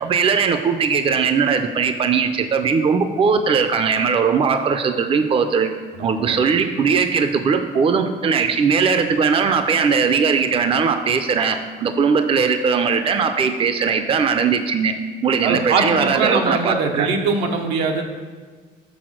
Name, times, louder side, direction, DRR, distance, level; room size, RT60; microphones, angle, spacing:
voice 1, 0.0-5.7 6.0-14.9 15.2-17.1, right 5 dB, 35° right, 8 dB, 0.5 m, -19 dB
voice 2, 5.9-6.4 15.4-18.0, right 4 dB, 90° right, 3 dB, 0.9 m, -22 dB
6.2 x 4.1 x 6.2 m, 1.5 s
cardioid pair, 110°, 17 cm